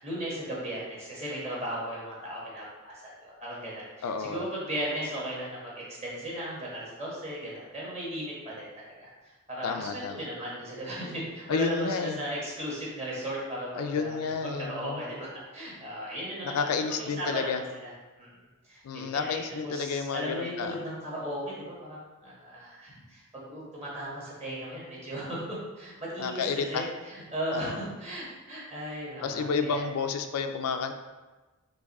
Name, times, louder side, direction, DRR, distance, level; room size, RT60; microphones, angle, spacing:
voice 1, 0.0-17.9 18.2-18.3 18.6-29.9, right 1 dB, 30° right, -6 dB, 1.3 m, -36 dB
voice 2, 4.0-4.5 9.6-10.3 11.5-12.2 13.7-15.0 16.4-17.6 18.8-20.8 26.2-26.9 27.5-27.8 29.2-30.9, left 5 dB, 75° left, 7 dB, 0.4 m, -30 dB
4.7 x 2.6 x 4.1 m, 1.2 s
head